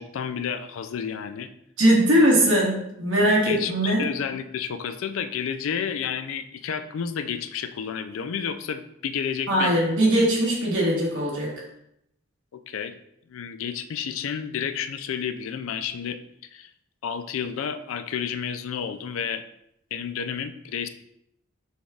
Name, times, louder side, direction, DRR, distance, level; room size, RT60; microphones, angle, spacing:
voice 1, 0.0-1.5 3.4-9.7 12.5-12.9 13.3-16.2 16.5-16.7 17.0-19.4 19.9-20.9, left 7 dB, 80° left, 10 dB, 0.4 m, -31 dB
voice 2, 1.8-4.0 9.5-11.5, right 1 dB, 65° right, -4 dB, 1.2 m, -20 dB
6.1 x 3.4 x 2.4 m, 0.77 s
head